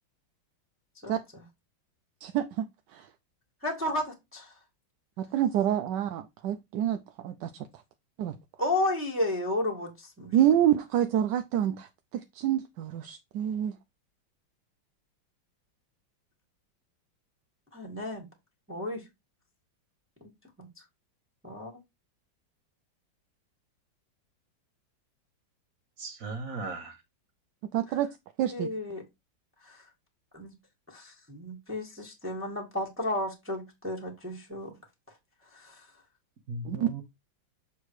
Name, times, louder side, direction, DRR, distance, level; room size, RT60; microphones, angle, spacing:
voice 1, 1.0-1.4 3.6-4.5 8.6-10.3 17.7-18.3 18.7-19.0 20.2-20.3 20.6-20.7 21.4-21.7 28.5-29.0 29.6-29.8 30.3-30.6 30.9-34.8 35.5-35.9, left 1 dB, 5° right, 1.7 m, -33 dB
voice 2, 2.2-2.7 2.9-3.1 5.2-7.7 8.2-8.4 10.3-13.8 27.7-28.1 28.4-28.7 36.6-36.9, right 11 dB, 75° right, 1.2 m, -27 dB
voice 3, 26.0-27.0 36.5-37.0, right 3 dB, 50° right, 1.4 m, -37 dB
6.9 x 3.7 x 4.6 m
omnidirectional pair, 2.0 m